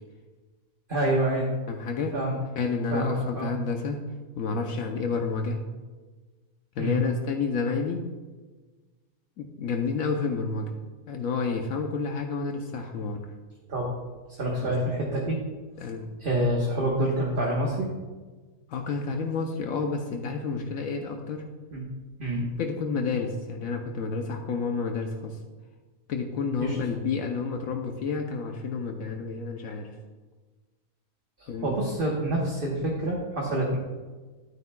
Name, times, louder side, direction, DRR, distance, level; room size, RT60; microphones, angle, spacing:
voice 1, 0.9-1.5 2.1-2.4 2.9-3.5 6.8-7.0 13.7-13.9 14.4-15.4 16.2-17.9 21.7-21.8 22.2-22.4 26.6-26.8 31.4-33.8, right 1 dB, 40° right, -3 dB, 1.3 m, -27 dB
voice 2, 1.7-2.1 2.6-4.0 4.3-5.6 6.8-8.1 9.4-10.7 11.1-13.2 14.6-14.7 15.8-16.1 18.7-21.4 22.4-25.4 26.1-29.9 31.5-31.8, left 4 dB, 75° left, 3 dB, 1.1 m, -30 dB
11.0 x 9.3 x 2.3 m, 1.3 s
omnidirectional pair, 1.5 m